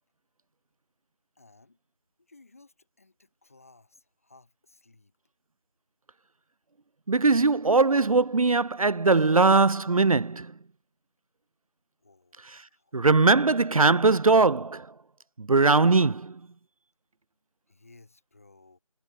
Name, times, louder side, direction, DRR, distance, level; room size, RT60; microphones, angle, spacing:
voice 1, 1.3-1.8 2.2-5.1 12.0-13.0 17.7-18.8, left 3 dB, 25° left, 4.4 m, -58 dB
voice 2, 7.1-10.5 12.9-14.9 15.4-16.4, right 3 dB, 70° right, 0.5 m, -21 dB
figure-of-eight pair, 175°, 18 cm